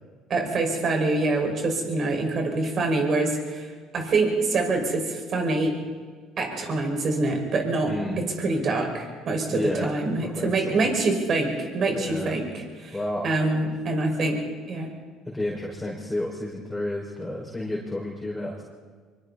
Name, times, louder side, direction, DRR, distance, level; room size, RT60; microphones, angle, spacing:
voice 1, 0.3-3.7 3.9-5.8 6.4-13.0 13.2-14.4 14.7-15.0, right 2 dB, 45° right, 2 dB, 5.7 m, -25 dB
voice 2, 7.8-8.2 9.5-9.9 10.2-10.9 11.9-12.4 12.9-13.3 15.3-18.6, left 1 dB, 10° left, -4 dB, 5.5 m, -31 dB
25.5 x 24.0 x 4.3 m, 1.5 s
hypercardioid pair, 70°, 0 cm